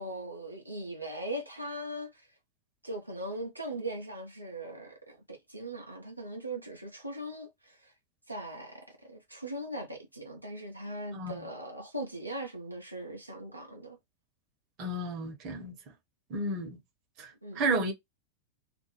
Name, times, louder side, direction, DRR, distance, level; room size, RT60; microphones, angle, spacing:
voice 1, 0.0-2.3 2.8-7.9 8.3-14.0 17.4-17.6, right 1 dB, 85° right, 0.5 m, -40 dB
voice 2, 11.1-11.5 14.8-15.8 16.3-16.8 17.2-17.9, right 2 dB, 40° right, 0.8 m, -32 dB
2.5 x 2.1 x 2.9 m
figure-of-eight pair, 90°, 0 cm